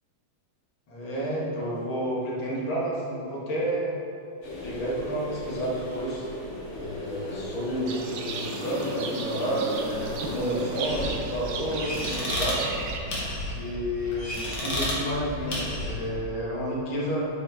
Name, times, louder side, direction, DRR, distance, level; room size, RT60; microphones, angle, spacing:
voice 1, 0.9-3.9 4.6-6.3 6.7-8.3 8.6-12.7 13.5-17.3, right 1 dB, 80° left, -6 dB, 2.5 m, -30 dB
sound 1, 4.4-11.2, left 1 dB, 40° left, 1.4 m, -37 dB
Livestock farm animals working animals, 7.9-13.0, right 4 dB, 70° right, 1.3 m, -36 dB
sound 2, 10.8-16.1, left 1 dB, 55° left, 2.2 m, -32 dB
9.7 x 5.6 x 3.6 m, 2.6 s
omnidirectional pair, 2.2 m